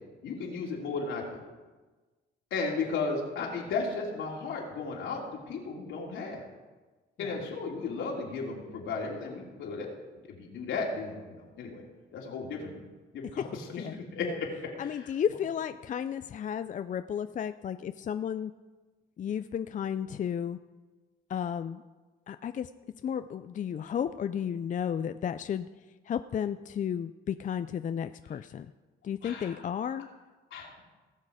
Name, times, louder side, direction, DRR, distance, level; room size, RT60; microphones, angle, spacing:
voice 1, 0.2-1.4 2.5-6.4 7.2-9.9 10.2-11.8 12.1-12.7 13.1-14.5 14.8-15.1 29.2-29.6 30.5-30.8, left 4 dB, 75° left, -1 dB, 2.9 m, -35 dB
voice 2, 13.7-14.3 14.8-18.5 19.2-20.6 21.3-21.8 22.3-22.7 23.0-25.7 26.1-28.7 29.0-30.1, left 8 dB, 40° left, 11 dB, 0.4 m, -33 dB
18.0 x 6.4 x 4.9 m, 1.3 s
cardioid pair, 90°, 20 cm